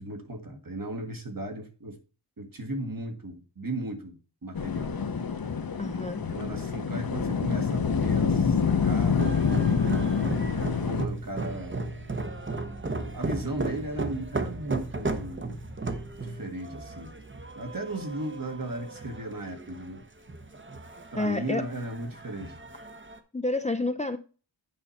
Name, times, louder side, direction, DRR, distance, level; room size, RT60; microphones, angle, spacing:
voice 1, 0.0-2.0 2.4-5.0 6.2-10.3 10.6-11.9 13.1-15.6 16.2-17.1 17.6-20.1 21.1-22.6, right 1 dB, 50° right, 1.8 m, -36 dB
sound 1, 4.5-11.1, left 5 dB, 50° left, 0.9 m, -26 dB
voice 2, 5.8-6.3 21.2-21.6 23.3-24.2, left 2 dB, 15° left, 0.5 m, -29 dB
sound 2, 9.2-23.2, right 3 dB, 25° right, 1.0 m, -36 dB
9.4 x 5.6 x 4.2 m
wide cardioid pair, 70°, 45 cm